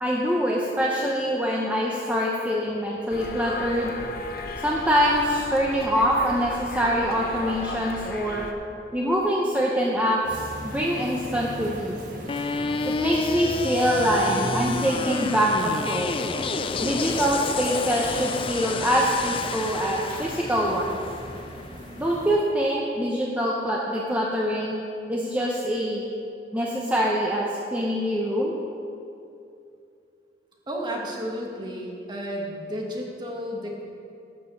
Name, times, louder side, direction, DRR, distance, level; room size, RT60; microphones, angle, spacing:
voice 1, 0.0-3.9 4.6-8.5 8.9-10.4 10.6-12.0 12.9-16.2 16.8-21.0 22.0-24.8 25.1-26.0 26.5-27.4 27.7-28.5, equal, 10° right, -4 dB, 0.8 m, -24 dB
sound 1, 3.1-8.5, left 3 dB, 55° left, 0.8 m, -36 dB
sound 2, 10.2-22.3, equal, 50° right, 1.5 m, -37 dB
sound 3, 12.3-22.3, left 4 dB, 30° left, 0.3 m, -30 dB
voice 2, 30.7-33.8, equal, 25° right, -1 dB, 1.4 m, -32 dB
12.0 x 5.0 x 7.0 m, 2.6 s
head